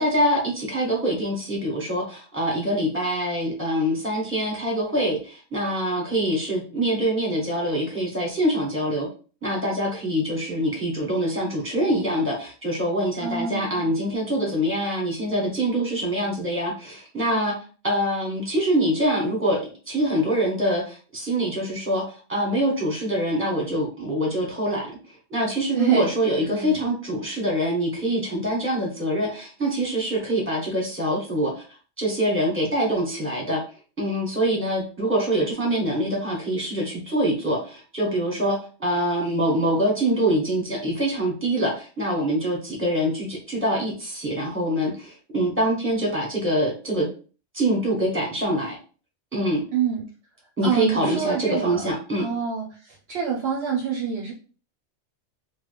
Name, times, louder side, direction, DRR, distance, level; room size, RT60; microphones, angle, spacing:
voice 1, 0.0-9.1 9.4-17.5 17.8-25.0 25.3-31.6 32.0-33.6 34.0-47.1 47.5-48.8 49.3-49.6 50.6-52.3, right 1 dB, 10° right, -2 dB, 1.2 m, -24 dB
voice 2, 13.2-13.8 25.7-26.1 26.4-26.9 49.7-50.0 50.6-51.9 52.2-54.3, right 6 dB, 65° right, 0 dB, 0.8 m, -26 dB
3.1 x 2.3 x 3.3 m, 0.37 s
omnidirectional pair, 1.2 m